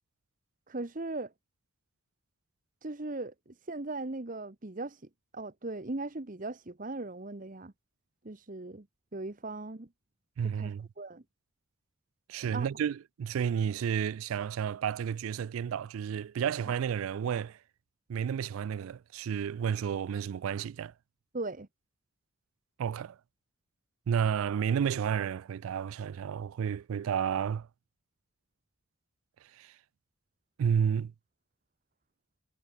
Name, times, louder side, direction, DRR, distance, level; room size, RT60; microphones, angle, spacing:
voice 1, 0.7-1.3 2.8-7.7 8.2-8.9 9.1-9.9 10.4-11.2 12.4-12.7 16.7-16.8 21.3-21.7, right 2 dB, 40° right, 1.0 m, -39 dB
voice 2, 10.4-10.9 12.3-17.6 18.1-20.9 22.8-23.2 24.1-27.7 29.6-29.7 30.6-31.1, right 8 dB, 75° right, 0.3 m, -31 dB
head